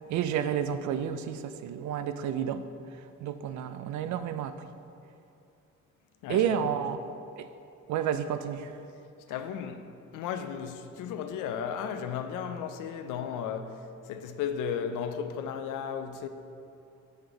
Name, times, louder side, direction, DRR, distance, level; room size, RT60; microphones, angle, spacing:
voice 1, 0.1-2.6 3.2-4.6 6.3-7.0 7.4-7.5 7.9-8.7, right 9 dB, 70° right, 0.4 m, -30 dB
voice 2, 6.2-6.7 9.3-16.3, left 7 dB, 85° left, 0.5 m, -35 dB
5.6 x 5.1 x 4.5 m
cardioid pair, 90°, 30 cm